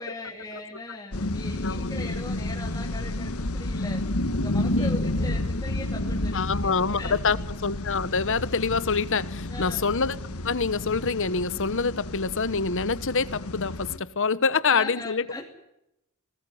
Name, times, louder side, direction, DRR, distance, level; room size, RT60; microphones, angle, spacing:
voice 1, 0.0-4.0 4.3-7.4 9.4-9.9 13.9-14.1 14.7-15.5, left 2 dB, 15° left, -2 dB, 2.9 m, -39 dB
sound 1, 1.1-14.0, left 1 dB, 75° left, 1.4 m, -30 dB
voice 2, 6.3-7.4 7.6-10.2 10.4-15.3, left 4 dB, 60° left, 16 dB, 1.2 m, -26 dB
20.5 x 19.5 x 9.5 m, 0.87 s
head